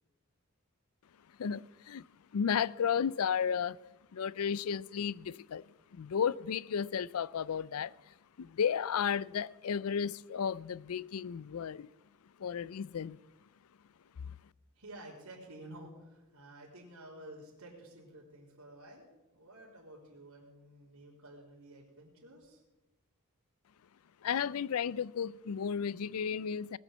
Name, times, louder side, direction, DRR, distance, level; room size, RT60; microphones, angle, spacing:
voice 1, 1.4-2.1 2.3-3.8 4.1-5.6 5.9-11.9 12.4-13.2 24.2-26.8, left 7 dB, 75° left, 0.4 m, -33 dB
voice 2, 14.7-22.6, right 1 dB, 85° right, 3.7 m, -52 dB
20.0 x 7.3 x 8.0 m
head